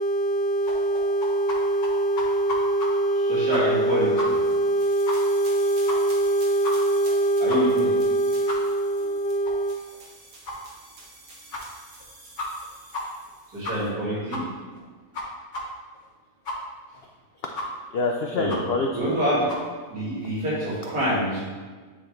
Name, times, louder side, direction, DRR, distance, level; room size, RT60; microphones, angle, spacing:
voice 1, 0.0-9.8 17.9-19.1, right 1 dB, 75° left, 2 dB, 0.5 m, -23 dB
sound 1, 0.7-1.6 1.8-1.9 2.2-2.9 3.2-3.3 3.5-3.9 4.2-4.3 4.6-4.7 5.1-5.2 5.5-5.6 5.9-6.2 6.6-6.7 7.1-7.2 7.5-7.6 8.0-8.1 8.5-8.6 9.0-9.1 9.5-9.6 9.9-10.0 10.5-10.6 11.0-11.1 11.5-11.6 12.0-12.1 12.4-12.7 12.9-13.0 13.3-13.4 13.6-14.0 14.3-14.4 14.8-14.9 15.1-15.2 15.5-15.6 15.9-16.0 16.5-16.6 16.9-17.0 17.6-17.7 18.0-18.1 18.5-18.6 19.0-19.1 19.5-19.6, left 2 dB, 55° left, 1.6 m, -32 dB
voice 2, 3.1-4.3 7.4-7.9 9.0-9.1 13.5-14.4 18.4-18.6 18.9-19.6 19.9-21.4, equal, 85° right, -8 dB, 2.6 m, -26 dB
sound 2, 3.9-13.9, right 2 dB, 70° right, 1.7 m, -47 dB
9.7 x 3.6 x 3.1 m, 1.4 s
omnidirectional pair, 1.6 m